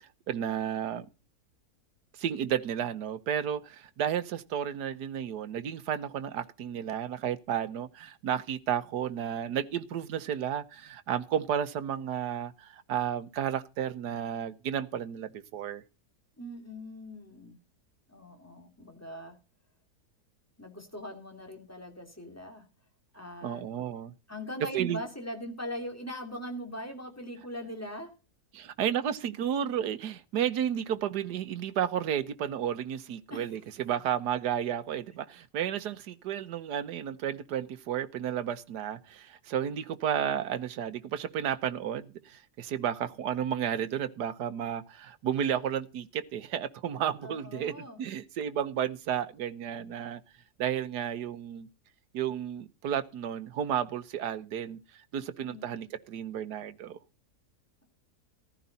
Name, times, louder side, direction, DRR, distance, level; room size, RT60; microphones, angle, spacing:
voice 1, 0.3-1.1 2.2-15.8 23.4-24.1 24.7-25.0 28.5-50.2 50.6-51.7 52.1-54.8 55.1-57.0, right 9 dB, 85° right, 1.5 m, -32 dB
voice 2, 16.4-17.6 18.1-19.3 20.6-22.6 23.1-23.7 24.3-28.1 33.3-33.5 47.2-48.0 55.5-55.8, equal, 10° left, 2.8 m, -41 dB
14.5 x 12.5 x 4.1 m
omnidirectional pair, 1.7 m